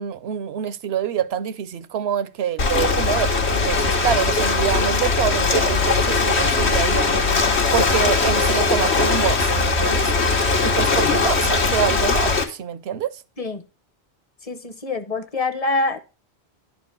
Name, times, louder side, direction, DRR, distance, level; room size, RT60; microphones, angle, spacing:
voice 1, 0.0-7.1 7.7-10.1 10.6-13.2, right 9 dB, 70° right, 0.9 m, -26 dB
Ocean, 2.6-12.4, left 3 dB, 80° left, 1.6 m, -20 dB
voice 2, 14.4-16.0, left 2 dB, 35° left, 1.0 m, -25 dB
11.0 x 4.5 x 6.7 m
omnidirectional pair, 1.1 m